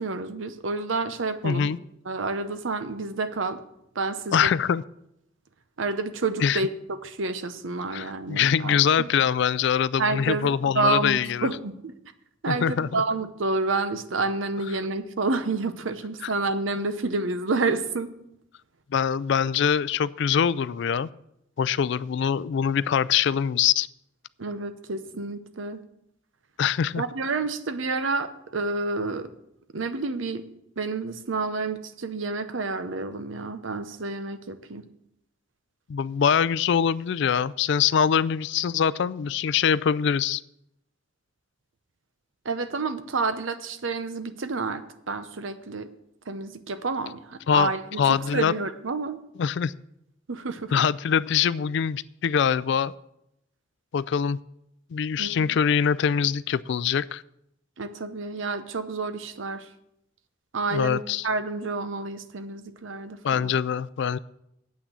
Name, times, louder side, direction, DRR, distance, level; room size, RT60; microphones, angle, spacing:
voice 1, 0.0-1.7 2.1-3.6 4.0-4.5 5.8-9.1 10.0-11.9 12.4-18.1 24.4-25.8 27.0-29.3 29.7-30.4 30.8-34.8 42.4-44.8 45.1-45.9 46.3-49.2 50.3-50.7 55.2-55.6 57.8-59.6 60.5-63.5, right 3 dB, 80° right, 11 dB, 0.8 m, -29 dB
voice 2, 1.4-1.8 4.3-4.8 6.4-6.6 7.9-11.5 12.5-13.0 16.2-16.3 18.9-21.1 21.6-23.9 26.6-27.0 35.9-40.4 47.5-47.7 48.0-48.5 49.4-49.7 50.7-52.9 53.9-54.4 54.9-57.2 60.7-61.3 63.2-64.2, left 7 dB, 60° left, 19 dB, 0.3 m, -23 dB
8.5 x 6.1 x 8.0 m, 0.79 s
head